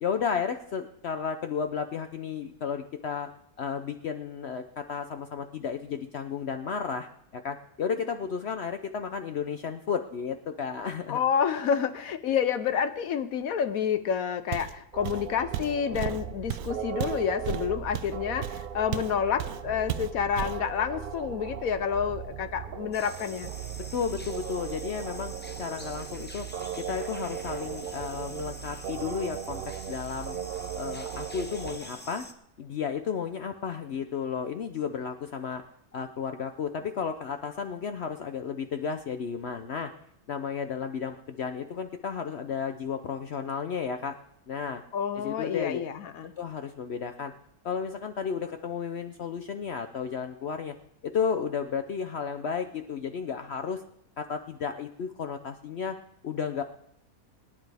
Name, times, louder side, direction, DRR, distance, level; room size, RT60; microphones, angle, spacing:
voice 1, 0.0-3.3 3.6-11.2 23.8-25.3 25.6-26.5 26.9-29.6 29.9-30.4 30.8-32.3 32.6-35.6 35.9-39.9 40.3-44.2 44.5-44.8 45.2-45.8 46.4-47.3 47.6-50.7 51.0-53.8 54.2-56.0 56.2-56.6, left 6 dB, 55° left, 7 dB, 0.8 m, -33 dB
voice 2, 11.1-23.5 44.9-46.3, left 7 dB, 75° left, 11 dB, 1.1 m, -29 dB
Walk footsteps, 14.5-14.8 15.0-19.1 19.4-19.6 19.9-20.6, right 11 dB, 85° right, 1.2 m, -34 dB
sound 1, 14.9-31.8, right 9 dB, 60° right, 0.6 m, -38 dB
sound 2, 22.9-32.3, left 1 dB, 10° left, 0.6 m, -46 dB
22.0 x 10.5 x 3.4 m, 0.74 s
omnidirectional pair, 1.5 m